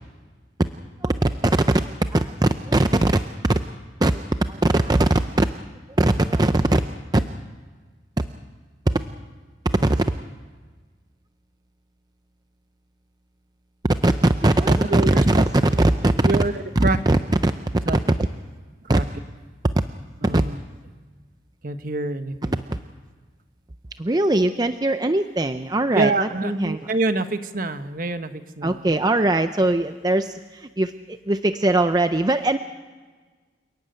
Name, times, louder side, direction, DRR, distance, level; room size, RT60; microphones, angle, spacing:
voice 1, 1.0-3.6 4.0-5.5 6.0-6.8 7.1-7.3 8.9-9.0 9.6-10.2 14.0-16.3 17.1-17.5 18.9-19.0 20.2-20.4 22.7-22.8 24.0-26.8 28.6-32.6, right 1 dB, 20° right, 9 dB, 0.6 m, -20 dB
voice 2, 14.7-15.4 16.2-17.0 17.8-18.0 18.8-19.0 20.2-20.6 21.6-22.6 25.9-29.0, right 3 dB, 50° right, 9 dB, 1.2 m, -26 dB
29.5 x 12.0 x 9.2 m, 1.4 s
head